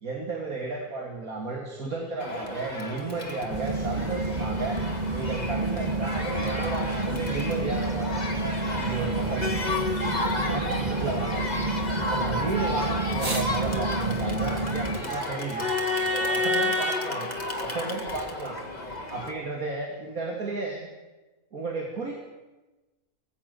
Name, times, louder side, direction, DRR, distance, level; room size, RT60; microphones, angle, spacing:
voice 1, 0.0-8.3 8.8-9.5 10.5-11.5 12.0-15.7 16.3-17.3 17.6-18.6 19.1-20.9 21.5-22.2, right 3 dB, 75° right, 0 dB, 2.9 m, -33 dB
sound 1, 1.7-12.2, equal, ahead, 4.7 m, -46 dB
Crowd, 2.2-19.3, left 2 dB, 30° left, 2.6 m, -31 dB
sound 2, 3.5-15.0, right 3 dB, 25° right, 2.2 m, -30 dB
25.0 x 17.0 x 6.9 m, 1.2 s
omnidirectional pair, 1.5 m